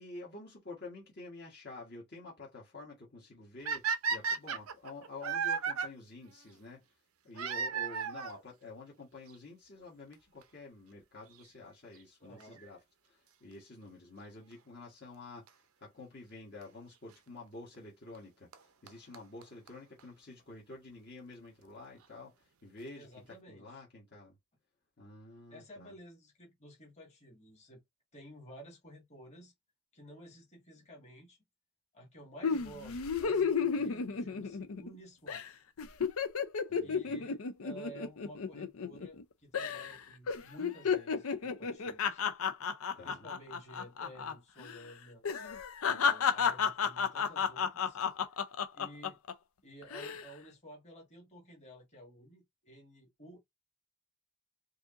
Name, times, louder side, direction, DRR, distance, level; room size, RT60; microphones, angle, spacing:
voice 1, 0.0-6.8 7.2-24.4 25.0-25.9 36.7-37.3 43.0-43.3, left 3 dB, 50° left, 1.4 m, -49 dB
sound 1, 3.6-5.9 7.3-8.4 9.3-9.4 10.1-10.2 10.4-10.5 12.4-12.6 15.5-15.6 16.6-16.7 18.1-18.2 18.5-18.6 18.9-19.0 19.1-19.2 19.4-19.5 19.7-19.8 20.0-20.1, right 6 dB, 80° right, 0.7 m, -33 dB
voice 2, 12.2-12.6 23.0-23.7 25.5-27.8 28.1-29.5 29.9-31.4 31.9-35.4 36.7-42.2 43.0-45.2 45.9-48.0 48.3-48.4 48.7-49.2 49.6-53.4, right 1 dB, 30° left, 1.8 m, -53 dB
sound 2, 32.4-35.0 35.3-35.5 35.8-39.2 39.5-40.0 40.3-44.3 44.6-44.8 45.2-49.3 49.8-50.2, left 6 dB, 75° left, 0.6 m, -32 dB
4.8 x 2.8 x 2.5 m
head